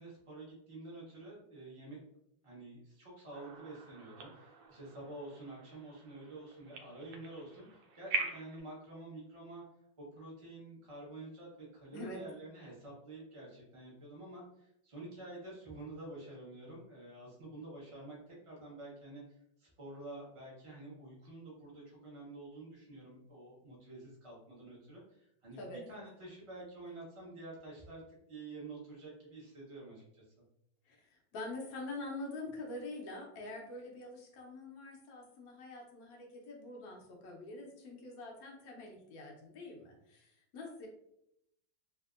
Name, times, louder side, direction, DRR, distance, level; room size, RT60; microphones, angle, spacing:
voice 1, 0.0-2.0 2.4-9.6 10.0-28.0 28.3-30.2, right 2 dB, 25° right, -5 dB, 0.7 m, -49 dB
sound 1, 3.3-8.6, right 4 dB, 90° right, 1.4 m, -43 dB
voice 2, 30.8-40.9, left 2 dB, 60° left, 0 dB, 1.0 m, -45 dB
3.5 x 2.6 x 2.4 m, 0.78 s
omnidirectional pair, 2.1 m